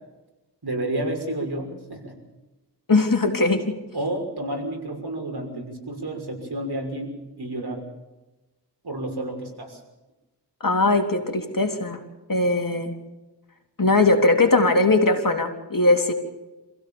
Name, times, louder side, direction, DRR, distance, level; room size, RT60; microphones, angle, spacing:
voice 1, 0.6-2.1 3.9-7.9 8.8-9.8, right 1 dB, 65° right, 2 dB, 6.2 m, -30 dB
voice 2, 2.9-3.8 10.6-12.0 12.3-12.9 13.8-16.1, left 2 dB, 50° left, 4 dB, 3.6 m, -20 dB
27.5 x 16.5 x 7.1 m, 1.1 s
wide cardioid pair, 50°, 41 cm